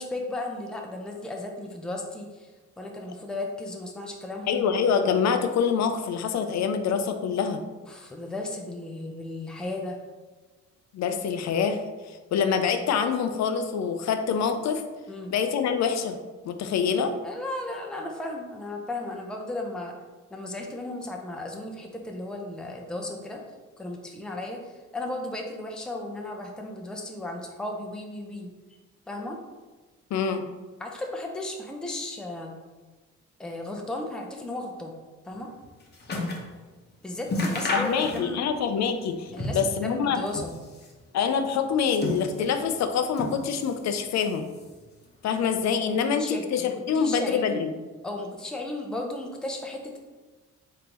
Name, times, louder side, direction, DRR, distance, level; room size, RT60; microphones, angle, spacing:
voice 1, 0.0-4.6 7.8-10.0 15.1-15.3 17.2-19.9 20.3-23.4 23.8-28.5 29.1-29.4 30.8-32.5 33.4-34.9 35.2-35.5 37.0-37.9 38.1-38.4 39.3-40.5 45.9-46.7 46.9-47.6 48.0-50.0, left 2 dB, 5° left, 1 dB, 0.5 m, -35 dB
voice 2, 4.5-7.6 10.9-11.8 12.1-14.8 15.3-16.2 16.4-17.1 30.1-30.5 37.7-40.2 41.1-44.5 45.2-47.7, left 6 dB, 65° left, 8 dB, 0.5 m, -25 dB
sound 1, 35.4-36.5 36.9-37.0 37.2-38.6 38.8-39.8 40.1-41.0 41.6-42.7 43.1-43.8 44.1-44.9 45.6-45.7, left 1 dB, 35° left, 0.8 m, -32 dB
3.7 x 3.7 x 2.9 m, 1.3 s
cardioid pair, 90°, 30 cm